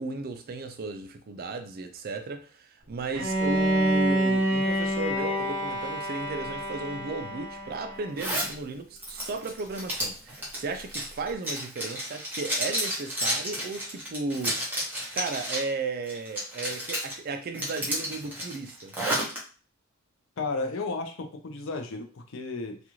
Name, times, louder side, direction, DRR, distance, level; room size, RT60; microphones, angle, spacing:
voice 1, 0.0-14.7 15.1-18.9, right 3 dB, 45° right, 0.4 m, -35 dB
Bowed string instrument, 3.1-8.1, right 1 dB, 70° right, 0.8 m, -27 dB
Zipper (clothing), 8.2-8.5 9.0-15.7 16.1-17.1 17.5-19.4, equal, 10° right, 0.7 m, -31 dB
voice 2, 20.4-22.8, left 3 dB, 60° left, 0.5 m, -33 dB
2.5 x 2.3 x 3.0 m
head